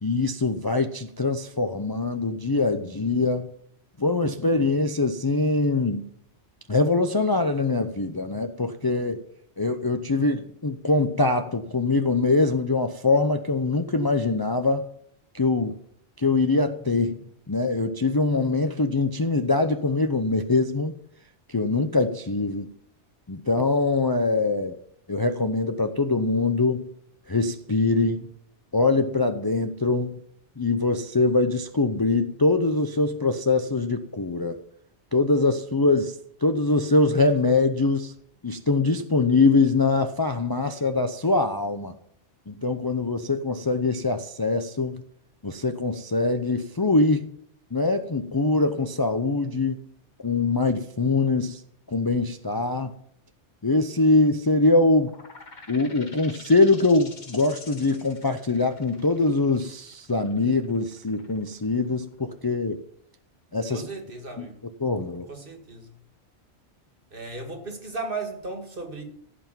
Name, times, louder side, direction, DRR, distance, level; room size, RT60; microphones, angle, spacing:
voice 1, 0.0-3.5 4.0-6.1 6.7-9.2 9.6-14.9 15.3-15.8 16.2-17.2 17.5-20.9 21.5-22.7 23.3-24.8 25.1-26.9 27.3-28.3 28.7-30.2 30.6-34.6 35.1-38.1 38.4-41.9 42.5-45.0 45.4-47.3 47.7-49.8 50.2-51.6 51.9-52.9 53.6-55.1 55.7-62.8 63.5-63.8 64.4-64.5 64.8-65.3, left 3 dB, 25° left, 0.6 m, -23 dB
sound 1, 55.0-62.4, left 3 dB, 40° left, 1.5 m, -47 dB
voice 2, 63.7-64.6 65.3-65.9 67.1-69.0, right 3 dB, 50° right, 2.3 m, -35 dB
15.5 x 5.7 x 9.2 m
omnidirectional pair, 1.2 m